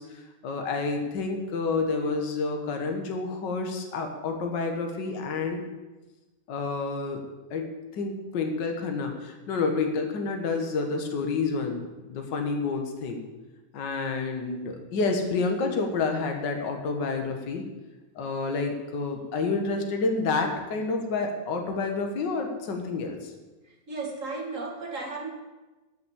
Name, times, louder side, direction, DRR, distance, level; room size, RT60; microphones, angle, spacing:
voice 1, 0.0-5.6 6.5-7.2 7.5-13.2 13.7-17.6 18.1-23.3, left 4 dB, 55° left, 4 dB, 1.2 m, -29 dB
voice 2, 23.6-25.3, right 3 dB, 30° right, -1 dB, 1.4 m, -35 dB
12.5 x 5.9 x 8.2 m, 1.2 s
omnidirectional pair, 4.0 m